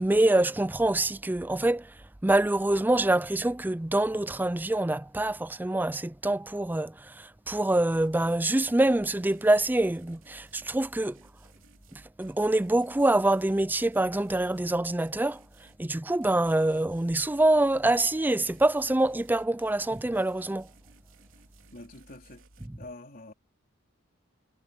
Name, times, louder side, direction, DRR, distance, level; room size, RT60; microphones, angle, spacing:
voice 1, 0.0-1.9 2.2-11.2 11.9-15.4 15.8-20.7, right 1 dB, 10° right, 0.4 m, -25 dB
sound 1, 7.9-8.4 8.8-15.8 16.2-22.7, right 2 dB, 70° right, 3.7 m, -57 dB
voice 2, 21.7-22.4 22.8-23.3, left 2 dB, 45° left, 4.2 m, -45 dB
head